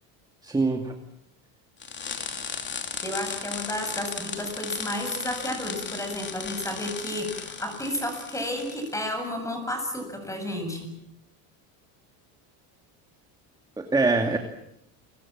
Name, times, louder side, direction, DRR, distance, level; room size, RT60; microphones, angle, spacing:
voice 1, 0.4-0.9 13.8-14.4, right 3 dB, 10° right, 5 dB, 2.4 m, -23 dB
sound 1, 1.8-9.0, left 6 dB, 25° left, 3.2 m, -36 dB
voice 2, 3.0-10.9, left 1 dB, 5° left, 6 dB, 7.4 m, -32 dB
30.0 x 24.0 x 7.4 m, 0.75 s
cardioid pair, 150°, 41 cm